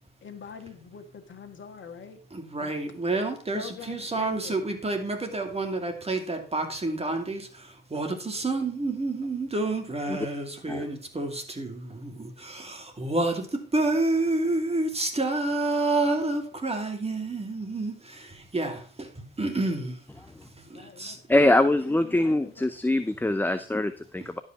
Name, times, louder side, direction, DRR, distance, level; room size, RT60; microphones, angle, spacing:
voice 1, 0.2-2.2 2.6-2.7 3.5-4.6 20.7-21.4 21.8-22.6, left 5 dB, 40° left, 1.8 m, -43 dB
voice 2, 2.3-20.0 20.6-21.2, right 2 dB, 20° right, 2.7 m, -29 dB
voice 3, 21.3-24.4, left 1 dB, 5° left, 0.7 m, -23 dB
11.5 x 5.5 x 5.9 m
hypercardioid pair, 65°, 29 cm